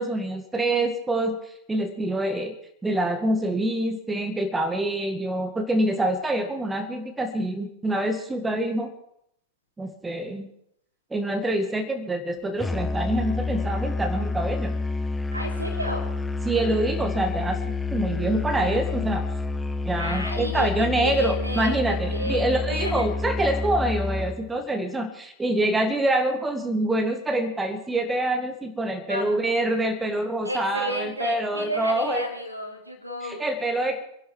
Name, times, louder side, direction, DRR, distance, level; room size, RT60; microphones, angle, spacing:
voice 1, 0.0-2.5 2.8-8.9 9.8-10.5 11.1-14.8 16.4-19.2 19.9-32.3 33.2-34.0, right 1 dB, 10° right, 6 dB, 2.0 m, -26 dB
Musical instrument, 12.6-24.4, left 3 dB, 10° left, 1.0 m, -29 dB
voice 2, 15.3-16.0 16.4-17.0 20.0-23.1 29.1-29.2 30.4-33.4, equal, 90° right, 1 dB, 3.4 m, -32 dB
26.0 x 11.5 x 4.6 m, 0.74 s
figure-of-eight pair, 90°, 0 cm